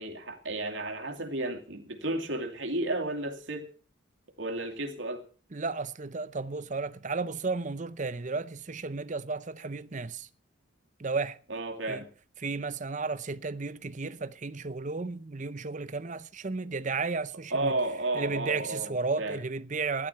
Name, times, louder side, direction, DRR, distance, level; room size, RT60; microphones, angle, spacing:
voice 1, 0.0-3.7 4.4-5.2 11.5-12.1 17.5-19.4, right 2 dB, 70° right, 2.6 m, -32 dB
voice 2, 5.5-10.3 11.0-11.4 11.9-12.0 12.4-17.7 18.1-20.1, right 4 dB, 40° right, 0.7 m, -33 dB
15.5 x 11.5 x 5.6 m
head